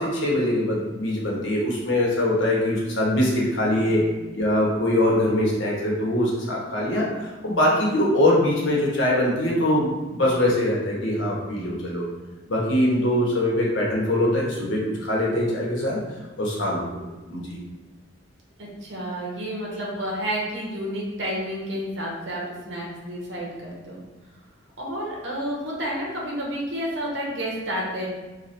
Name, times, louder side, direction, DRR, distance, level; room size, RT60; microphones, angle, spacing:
voice 1, 0.0-4.0 4.3-12.0 12.5-16.0 16.4-17.0 17.3-17.6, left 1 dB, 75° left, -4 dB, 1.0 m, -23 dB
voice 2, 3.7-4.2 18.6-24.0 24.8-28.1, equal, 65° right, -3 dB, 1.0 m, -30 dB
3.1 x 2.3 x 4.1 m, 1.1 s
head